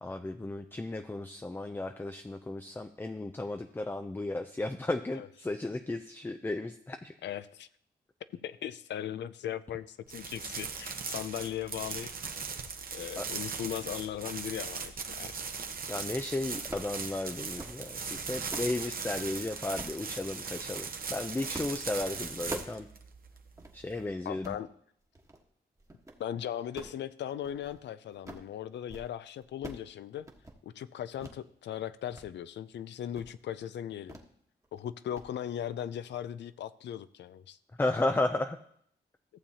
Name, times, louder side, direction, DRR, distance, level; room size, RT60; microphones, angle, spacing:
voice 1, 0.0-7.1 13.2-13.3 15.9-22.9 23.7-24.6 37.8-38.6, left 2 dB, 10° left, 7 dB, 0.4 m, -34 dB
voice 2, 7.2-7.7 8.4-12.1 12.9-15.3 24.3-24.7 26.2-30.3 30.6-34.2 34.7-37.6, left 10 dB, 85° left, 14 dB, 0.4 m, -38 dB
sound 1, 10.1-24.1, right 5 dB, 55° right, 0.9 m, -39 dB
sound 2, 16.7-17.0 17.4-17.8 18.2-18.8 19.8-20.0 20.7-21.0 21.5-21.8 22.1-22.8 23.2-23.3 23.6-23.8 24.3-24.6 25.1-25.4 25.8-26.2 26.6-27.8 28.1-28.5 28.8-29.1 29.4-29.9 30.2-30.6 31.2-31.4 31.8-32.3 32.6-32.7 33.1-33.4 34.1-34.3 34.6-34.8 35.2-35.3, right 2 dB, 15° right, 1.2 m, -46 dB
14.5 x 7.1 x 2.8 m, 0.68 s
cardioid pair, 75°, 18 cm